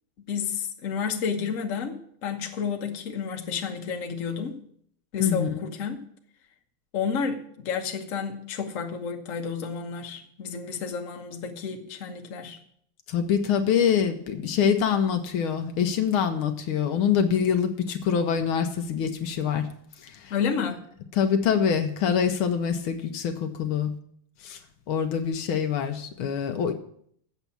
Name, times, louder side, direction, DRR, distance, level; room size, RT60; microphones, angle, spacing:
voice 1, 0.3-4.6 5.1-6.0 6.9-12.6 20.3-20.8, left 6 dB, 45° left, 1.3 m, -31 dB
voice 2, 5.2-5.7 13.1-19.7 20.0-20.3 21.1-23.9 24.4-24.6 24.9-26.7, left 7 dB, 75° left, 1.7 m, -25 dB
8.1 x 7.1 x 8.5 m
omnidirectional pair, 2.4 m